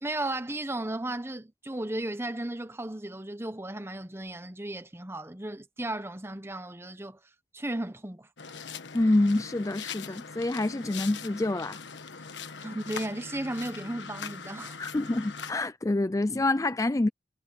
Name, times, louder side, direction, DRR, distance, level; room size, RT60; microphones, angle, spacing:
voice 1, 0.0-7.2 7.5-8.3 12.6-14.8, right 1 dB, 15° right, 1.0 m, -35 dB
sound 1, 8.4-15.5, left 6 dB, 85° left, 1.3 m, -41 dB
voice 2, 8.9-11.8 14.8-17.1, left 2 dB, 20° left, 0.4 m, -27 dB
head